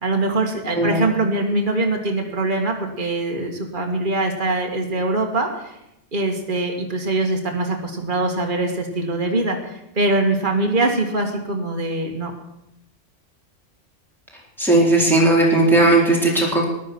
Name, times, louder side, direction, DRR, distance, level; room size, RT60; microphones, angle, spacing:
voice 1, 0.0-5.7 6.1-12.3, right 2 dB, 45° right, 2 dB, 2.2 m, -23 dB
voice 2, 14.6-16.7, right 2 dB, ahead, -3 dB, 4.1 m, -16 dB
14.0 x 11.5 x 6.2 m, 0.85 s
omnidirectional pair, 1.2 m